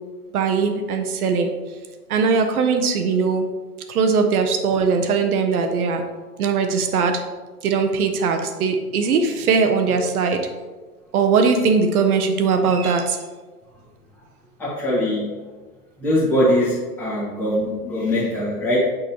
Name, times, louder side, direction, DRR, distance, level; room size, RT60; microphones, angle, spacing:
voice 1, 0.3-1.5 2.1-3.5 3.9-6.0 6.4-7.2 7.6-10.4 11.1-13.2, right 5 dB, 65° right, 5 dB, 0.9 m, -20 dB
voice 2, 14.6-15.3 16.0-18.9, left 1 dB, 5° left, -9 dB, 1.5 m, -21 dB
6.3 x 5.3 x 3.0 m, 1.3 s
hypercardioid pair, 120°, 47 cm